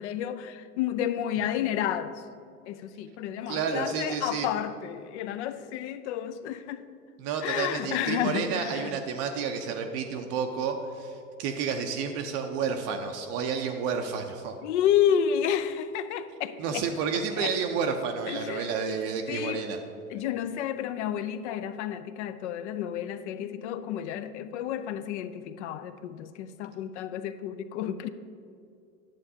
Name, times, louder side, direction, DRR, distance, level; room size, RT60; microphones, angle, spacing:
voice 1, 0.0-2.2 2.7-6.8 7.4-9.0 14.6-16.9 17.4-17.5 18.3-18.8 19.3-19.7 20.1-28.1, left 9 dB, 55° left, 0.5 m, -30 dB
voice 2, 3.5-4.5 7.2-14.6 16.6-19.8, right 6 dB, 35° right, 0.5 m, -30 dB
10.0 x 7.2 x 2.7 m
hypercardioid pair, 100°, 44 cm